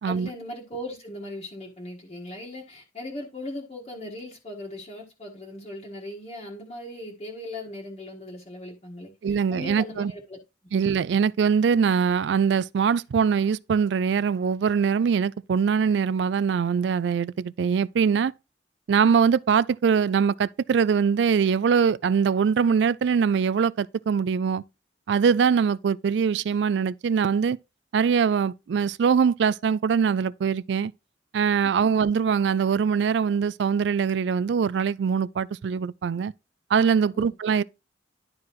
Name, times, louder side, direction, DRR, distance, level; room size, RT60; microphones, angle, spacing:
voice 1, 0.0-10.4 31.6-31.9 37.1-37.3, left 1 dB, 35° left, 1.5 m, -39 dB
voice 2, 9.2-10.1 10.7-18.3 18.9-24.6 25.1-27.6 27.9-30.9 31.3-36.3 36.7-37.6, right 6 dB, 75° right, 0.3 m, -22 dB
11.5 x 4.7 x 3.0 m
head